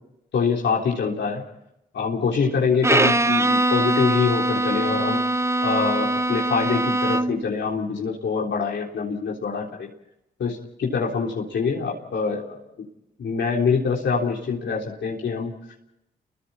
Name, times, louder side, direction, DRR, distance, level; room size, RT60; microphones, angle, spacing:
voice 1, 0.3-1.4 1.9-5.2 5.6-9.9 10.4-12.9 13.2-15.5, left 5 dB, 70° left, -1 dB, 3.8 m, -25 dB
Bowed string instrument, 2.8-7.5, right 2 dB, 15° right, 0.7 m, -22 dB
29.0 x 23.0 x 4.3 m, 0.84 s
supercardioid pair, 50°, 19 cm